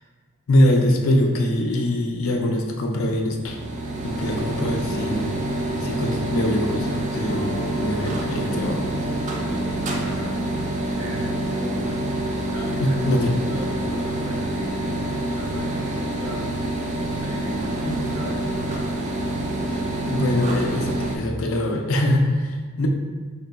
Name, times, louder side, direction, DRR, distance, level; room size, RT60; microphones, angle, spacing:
voice 1, 0.5-3.6 4.0-5.3 5.7-8.9 12.8-13.3 17.8-18.1 19.7-19.8 20.1-22.9, left 1 dB, 85° left, 2 dB, 0.5 m, -23 dB
sound 1, 3.4-21.2, right 1 dB, 35° right, 0.4 m, -27 dB
sound 2, 7.1-13.2, right 2 dB, 50° left, 0.7 m, -41 dB
voice 2, 9.9-10.4 10.9-16.5 17.2-18.4 19.8-20.0, equal, 70° right, -4 dB, 0.9 m, -37 dB
3.3 x 2.2 x 3.9 m, 1.5 s
head